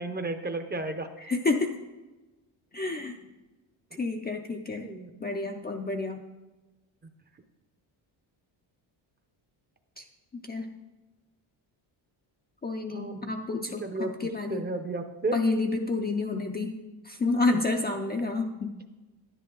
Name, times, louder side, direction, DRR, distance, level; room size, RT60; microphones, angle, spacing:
voice 1, 0.0-1.1 4.8-5.1 12.9-13.3 13.8-14.1 14.5-15.4, right 2 dB, 20° right, 7 dB, 0.6 m, -32 dB
voice 2, 1.2-1.7 2.7-3.2 3.9-4.9 5.2-6.2 10.0-10.1 10.3-10.7 12.6-14.6 15.3-16.8 17.0-18.7, left 3 dB, 20° left, 3 dB, 0.4 m, -29 dB
10.5 x 10.0 x 3.8 m, 1.1 s
wide cardioid pair, 165°, 47 cm